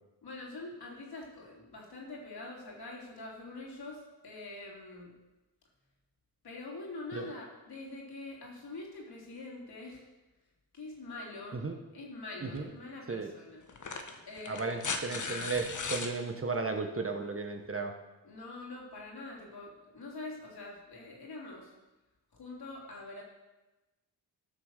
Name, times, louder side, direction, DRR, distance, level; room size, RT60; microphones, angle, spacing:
voice 1, 0.2-5.1 6.4-10.1 10.7-11.6 11.9-13.6 14.3-14.8 18.2-21.7 22.3-23.2, left 2 dB, 60° left, -2 dB, 3.8 m, -45 dB
sound 1, 12.6-12.7 13.7-16.1 17.7-17.8, left 4 dB, 45° left, 1.4 m, -37 dB
voice 2, 14.5-17.9, right 4 dB, 30° right, 5 dB, 1.3 m, -34 dB
13.0 x 6.2 x 6.6 m, 1.1 s
cardioid pair, 60°, 43 cm